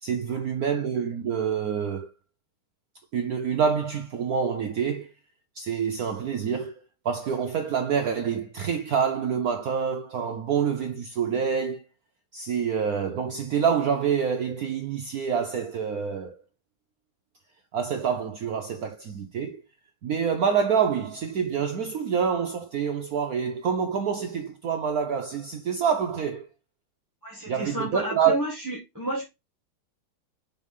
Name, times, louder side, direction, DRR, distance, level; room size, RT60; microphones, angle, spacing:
voice 1, 0.0-2.1 3.1-5.1 5.6-6.7 7.0-11.8 12.3-16.4 17.7-19.6 20.0-26.5 27.5-28.4, right 7 dB, 75° right, 0.8 m, -27 dB
voice 2, 27.2-29.2, right 1 dB, 10° right, 1.4 m, -31 dB
4.8 x 4.6 x 5.4 m
omnidirectional pair, 2.3 m